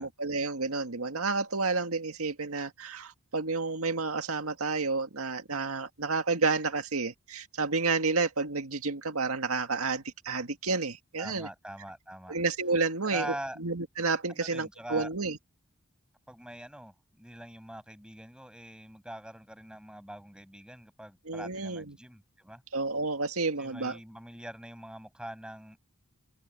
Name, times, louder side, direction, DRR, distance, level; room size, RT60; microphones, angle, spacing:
voice 1, 0.0-11.5 12.3-15.4 21.3-22.0 22.7-24.0, right 3 dB, 85° right, 1.9 m, -30 dB
voice 2, 11.2-12.4 13.0-13.6 14.3-15.1 16.3-22.6 23.6-25.8, right 1 dB, 5° right, 8.0 m, -43 dB
open air
head